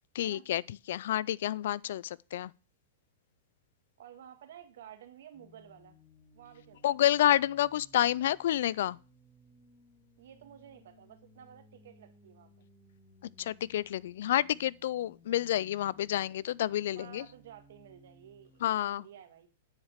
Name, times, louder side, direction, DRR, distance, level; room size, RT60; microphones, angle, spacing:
voice 1, 0.1-0.6 0.9-2.5 6.8-9.0 13.4-17.2 18.6-19.0, left 12 dB, 70° left, 0.4 m, -29 dB
voice 2, 4.0-6.0 6.3-7.2 10.2-12.7 16.9-19.5, right 10 dB, 70° right, 2.0 m, -53 dB
sound 1, 5.3-18.7, left 1 dB, 5° left, 2.2 m, -61 dB
9.5 x 5.0 x 7.2 m
hypercardioid pair, 135°, 0 cm